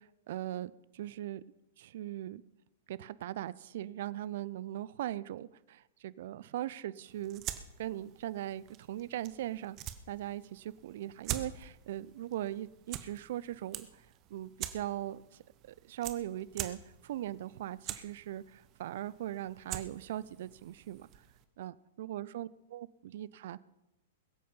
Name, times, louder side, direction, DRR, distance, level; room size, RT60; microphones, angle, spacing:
voice 1, 0.0-1.4 1.8-2.4 2.9-7.4 7.8-9.8 10.1-21.1 21.6-23.6, right 13 dB, 60° right, 20 dB, 0.5 m, -40 dB
sound 1, 7.1-21.4, right 12 dB, 35° right, 1.1 m, -46 dB
21.5 x 8.5 x 5.5 m, 0.95 s
hypercardioid pair, 105°, 0 cm